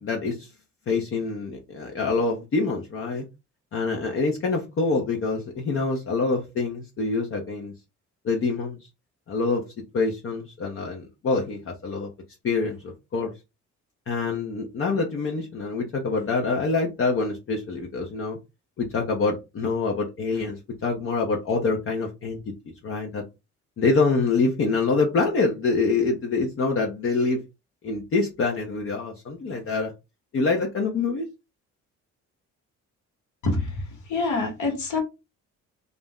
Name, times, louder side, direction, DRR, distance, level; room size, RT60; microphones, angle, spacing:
voice 1, 0.0-0.5 0.9-3.2 3.7-7.7 8.2-8.8 9.3-9.6 9.9-12.1 12.4-13.3 14.1-18.4 18.8-20.6 20.8-22.5 22.8-23.2 23.8-27.4 27.8-29.9 30.3-31.3, left 4 dB, 45° left, 0.7 m, -25 dB
voice 2, 33.4-35.0, left 3 dB, 70° left, 1.2 m, -26 dB
2.5 x 2.1 x 3.5 m
cardioid pair, 90°, 30 cm